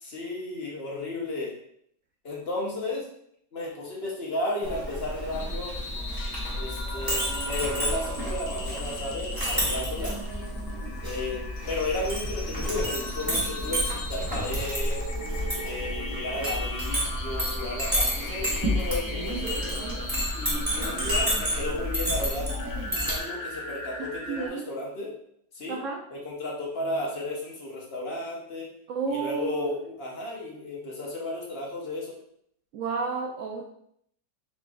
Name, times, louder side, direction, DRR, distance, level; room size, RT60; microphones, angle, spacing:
voice 1, 0.0-1.5 2.2-3.1 3.5-5.7 6.5-10.2 11.0-15.0 15.6-19.4 20.3-25.2 25.5-25.8 26.1-28.7 29.1-32.1, left 1 dB, 40° left, -3 dB, 1.1 m, -33 dB
Chink clink, 4.6-23.2, equal, 15° right, 1.3 m, -30 dB
sound 1, 5.3-24.5, left 2 dB, 80° left, 1.4 m, -39 dB
voice 2, 24.3-24.6 25.7-26.0 28.9-29.6 32.7-33.7, right 5 dB, 70° right, 0 dB, 0.7 m, -31 dB
4.3 x 4.1 x 2.4 m, 0.69 s
omnidirectional pair, 1.8 m